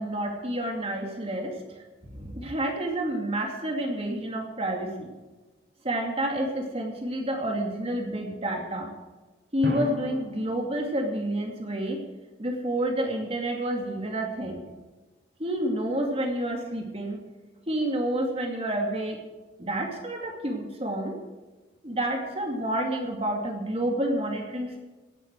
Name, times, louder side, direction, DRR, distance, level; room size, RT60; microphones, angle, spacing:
voice 1, 0.0-1.8 2.1-5.1 5.8-8.9 9.5-12.0 12.4-14.6 15.4-17.2 17.7-19.2 19.6-21.2 21.8-24.8, right 1 dB, 30° right, 2 dB, 2.4 m, -29 dB
Drum, 9.6-11.9, equal, 60° right, 3.2 m, -35 dB
17.5 x 13.0 x 4.7 m, 1.2 s
head